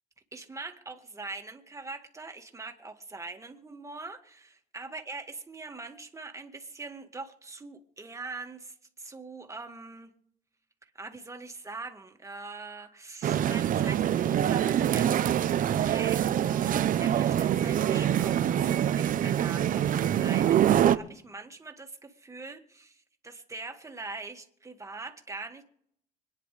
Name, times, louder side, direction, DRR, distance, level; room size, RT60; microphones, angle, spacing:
voice 1, 0.3-10.1 11.0-25.6, right 3 dB, 20° right, 5 dB, 2.0 m, -43 dB
sound 1, 13.2-21.0, right 10 dB, 55° right, 0.8 m, -25 dB
26.0 x 10.0 x 3.4 m, 0.67 s
cardioid pair, 110°, 17 cm